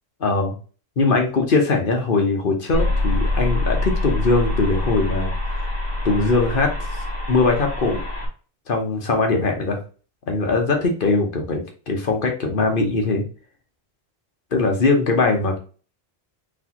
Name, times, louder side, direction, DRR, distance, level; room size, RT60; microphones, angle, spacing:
voice 1, 0.2-0.5 1.0-5.3 6.0-6.7 7.3-8.0 8.7-9.8 10.3-13.2 14.5-15.6, left 3 dB, 55° left, 3 dB, 1.1 m, -21 dB
sound 1, 2.7-8.3, left 2 dB, 10° left, 1.4 m, -24 dB
4.1 x 3.5 x 2.9 m, 0.37 s
omnidirectional pair, 1.1 m